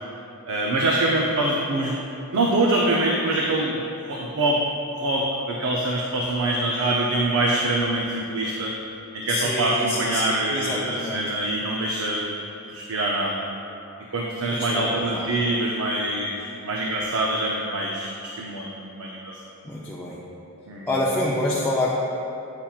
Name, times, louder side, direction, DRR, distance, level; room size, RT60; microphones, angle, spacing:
voice 1, 0.5-1.9 2.3-4.6 5.0-8.7 9.1-12.4 12.7-13.4 14.1-19.3 20.7-20.9, right 2 dB, 65° right, -2 dB, 0.6 m, -24 dB
voice 2, 9.3-11.3 14.5-15.3 19.6-20.2 20.9-22.0, left 1 dB, 10° left, -5 dB, 0.5 m, -27 dB
8.6 x 5.7 x 2.4 m, 2.8 s
head